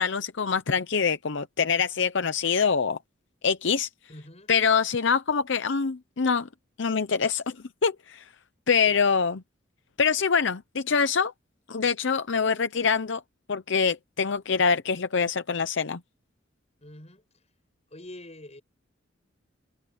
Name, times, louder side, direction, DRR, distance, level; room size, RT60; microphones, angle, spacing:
voice 1, 0.0-3.0 3.4-3.9 4.5-6.5 6.8-7.5 7.8-8.2 8.7-9.4 10.0-11.3 11.7-13.2 13.5-16.0, left 6 dB, 65° left, 0.7 m, -24 dB
voice 2, 4.1-4.5 8.9-9.0 16.8-17.2 17.9-18.6, left 1 dB, 35° left, 7.8 m, -45 dB
head